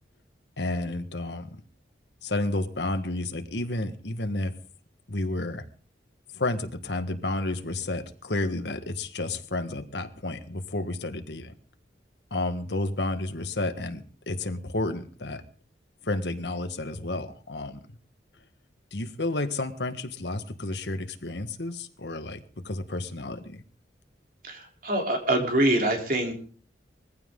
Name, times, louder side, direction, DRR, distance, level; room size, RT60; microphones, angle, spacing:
voice 1, 0.6-1.5 2.2-4.6 5.1-5.6 6.3-11.5 12.3-15.4 16.0-17.8 18.9-23.6, left 2 dB, 75° left, 8 dB, 1.5 m, -31 dB
voice 2, 24.4-26.3, right 1 dB, 50° right, 3 dB, 3.5 m, -25 dB
20.5 x 15.0 x 3.8 m, 0.42 s
head